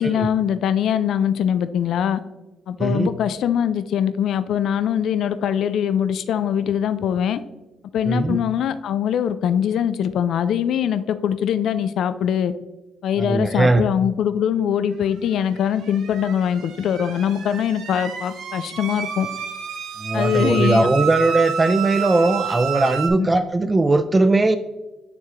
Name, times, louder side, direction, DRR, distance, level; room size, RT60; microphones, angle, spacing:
voice 1, 0.0-2.2 2.7-7.4 7.9-12.5 13.0-19.3 20.1-20.9 23.2-23.3, left 9 dB, 70° left, 12 dB, 0.3 m, -22 dB
voice 2, 2.8-3.1 8.1-8.4 13.2-13.8 20.0-24.6, right 2 dB, 20° right, 10 dB, 0.3 m, -19 dB
sound 1, 15.5-23.1, right 8 dB, 80° right, 0.8 m, -30 dB
9.3 x 3.5 x 2.9 m, 1.1 s
cardioid pair, 90°, 0 cm